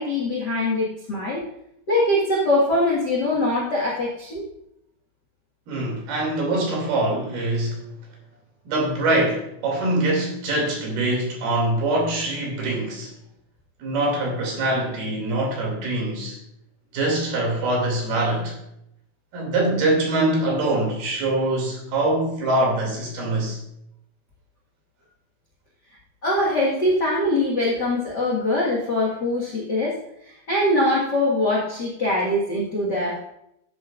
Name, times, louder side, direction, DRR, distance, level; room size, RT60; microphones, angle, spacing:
voice 1, 0.0-1.4 1.9-4.4 26.2-30.0 30.2-33.2, left 1 dB, 65° left, -3 dB, 1.0 m, -22 dB
voice 2, 5.7-7.8 8.7-13.1 13.8-16.4 16.9-18.6 19.3-23.6, right 2 dB, 65° right, 0 dB, 4.3 m, -23 dB
13.0 x 8.4 x 2.5 m, 0.79 s
omnidirectional pair, 4.9 m